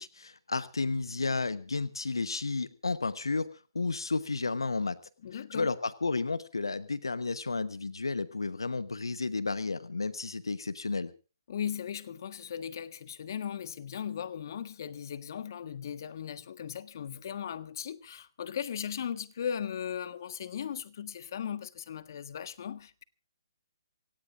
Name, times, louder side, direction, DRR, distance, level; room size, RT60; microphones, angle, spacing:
voice 1, 0.0-5.0 5.5-11.1, left 3 dB, 90° left, 1.1 m, -32 dB
voice 2, 5.2-5.7 11.5-23.0, left 8 dB, 55° left, 1.5 m, -37 dB
25.5 x 18.0 x 2.6 m
hypercardioid pair, 145°, 2 cm